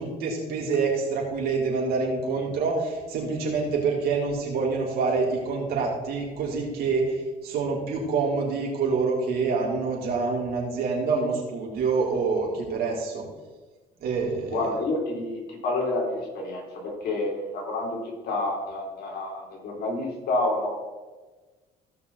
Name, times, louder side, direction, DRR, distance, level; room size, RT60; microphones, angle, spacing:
voice 1, 0.0-13.2 14.0-14.7, right 4 dB, 70° right, -3 dB, 3.9 m, -26 dB
voice 2, 14.5-20.7, left 2 dB, 65° left, -1 dB, 3.7 m, -29 dB
17.5 x 6.1 x 4.1 m, 1.3 s
cardioid pair, 110°, 17 cm